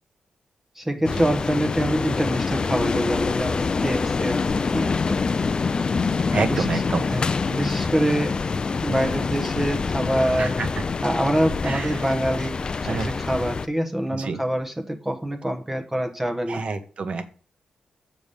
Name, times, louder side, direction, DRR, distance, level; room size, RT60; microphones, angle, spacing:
voice 1, 0.8-5.0 6.3-6.8 7.1-7.2 7.5-8.4 8.8-10.6 11.0-16.7, right 1 dB, 10° right, 1.0 m, -25 dB
sound 1, 1.0-13.7, left 4 dB, 40° left, 0.5 m, -25 dB
voice 2, 6.3-7.1 10.4-10.8 11.6-12.0 12.8-13.1 14.1-14.4 16.5-17.2, right 4 dB, 55° right, 1.2 m, -28 dB
7.1 x 5.4 x 6.6 m
cardioid pair, 90°, 2 cm